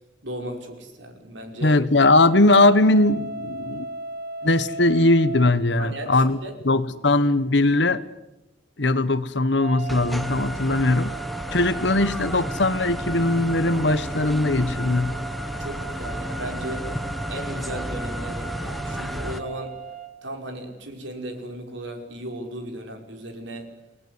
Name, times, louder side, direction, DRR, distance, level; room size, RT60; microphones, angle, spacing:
voice 1, 0.2-1.8 5.8-6.6 15.6-16.9 17.3-19.8 20.2-23.8, right 1 dB, 75° right, 5 dB, 5.4 m, -36 dB
voice 2, 1.6-3.9 4.4-6.4 6.6-8.0 8.8-11.1 11.5-15.2, left 2 dB, 65° left, 15 dB, 1.3 m, -20 dB
sound 1, 2.0-5.6 9.6-20.1, right 5 dB, 50° right, 3.7 m, -37 dB
sound 2, 9.9-19.4, equal, ahead, 1.4 m, -32 dB
29.5 x 20.0 x 9.7 m, 0.97 s
head